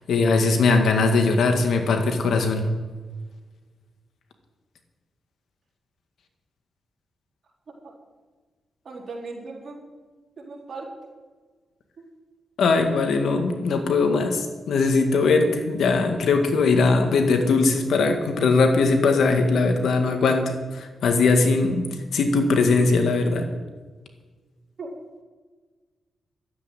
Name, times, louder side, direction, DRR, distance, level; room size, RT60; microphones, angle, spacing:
voice 1, 0.0-2.7 12.6-23.5, left 3 dB, 80° left, 5 dB, 1.9 m, -20 dB
voice 2, 8.8-9.8 10.4-10.9 24.8-24.9, right 3 dB, 55° right, -2 dB, 4.2 m, -37 dB
12.5 x 8.8 x 9.2 m, 1.4 s
cardioid pair, 85°, 0 cm